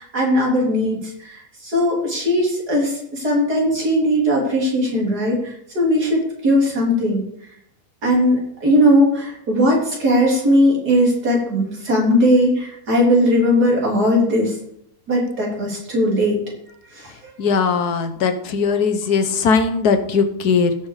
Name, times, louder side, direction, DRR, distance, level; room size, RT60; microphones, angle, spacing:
voice 1, 0.0-7.2 8.0-14.6 15.1-16.4 16.9-17.3, equal, 85° right, -2 dB, 4.0 m, -18 dB
voice 2, 17.4-20.8, left 5 dB, 80° left, 8 dB, 1.5 m, -19 dB
17.0 x 5.9 x 4.9 m, 0.73 s
omnidirectional pair, 1.6 m